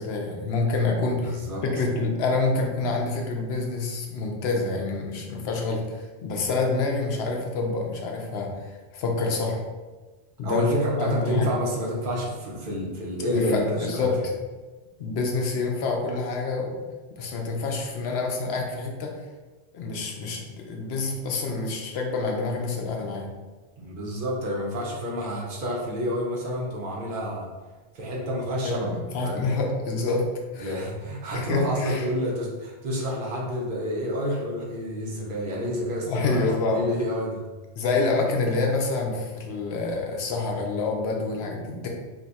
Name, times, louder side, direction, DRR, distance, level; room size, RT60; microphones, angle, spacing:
voice 1, 0.0-8.5 8.9-9.6 10.4-10.7 11.0-11.5 13.3-14.2 15.0-16.8 17.1-19.2 19.7-23.3 28.6-30.3 30.5-30.7 31.3-32.0 36.1-36.9 37.8-41.9, left 3 dB, 70° left, 1 dB, 0.9 m, -27 dB
voice 2, 1.2-1.6 10.4-14.1 23.8-27.5 27.9-28.9 29.2-29.5 30.6-37.4, equal, 55° right, -2 dB, 0.8 m, -29 dB
2.7 x 2.3 x 3.9 m, 1.3 s
omnidirectional pair, 1.1 m